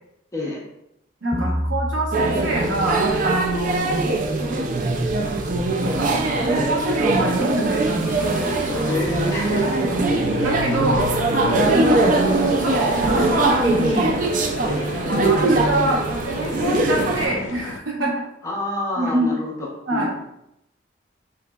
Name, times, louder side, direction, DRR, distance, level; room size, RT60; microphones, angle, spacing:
voice 1, 1.2-4.0 5.8-6.1 6.4-8.6 9.9-10.0 10.4-11.1 11.7-12.0 12.6-14.2 15.1-16.0 16.4-18.1 19.0-19.3 19.9-20.1, right 1 dB, 80° right, -3 dB, 0.9 m, -25 dB
sound 1, 1.3-4.1, equal, 15° right, 0.7 m, -30 dB
sound 2, 2.1-17.3, right 2 dB, 45° right, 0.3 m, -21 dB
sound 3, 8.0-17.8, left 4 dB, 85° left, 0.3 m, -34 dB
voice 2, 8.9-9.7 11.8-12.0 14.6-14.9 18.4-20.2, left 2 dB, 15° left, -3 dB, 0.5 m, -27 dB
3.4 x 2.9 x 2.3 m, 0.81 s
head